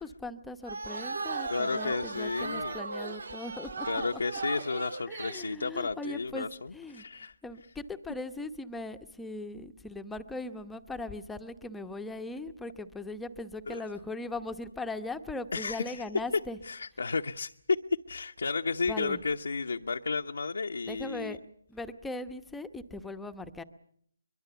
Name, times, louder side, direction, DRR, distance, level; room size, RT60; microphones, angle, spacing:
voice 1, 0.0-3.9 5.1-16.6 18.9-19.2 20.9-21.4 21.7-23.6, left 2 dB, 5° left, 8 dB, 0.9 m, -39 dB
sound 1, 0.6-5.5, right 3 dB, 70° right, 1.8 m, -37 dB
voice 2, 1.5-2.7 3.8-7.3 13.7-13.8 15.5-16.0 16.6-17.8 18.1-21.4, left 4 dB, 75° left, 4 dB, 0.9 m, -32 dB
23.0 x 23.0 x 7.0 m, 0.68 s
figure-of-eight pair, 155°, 0 cm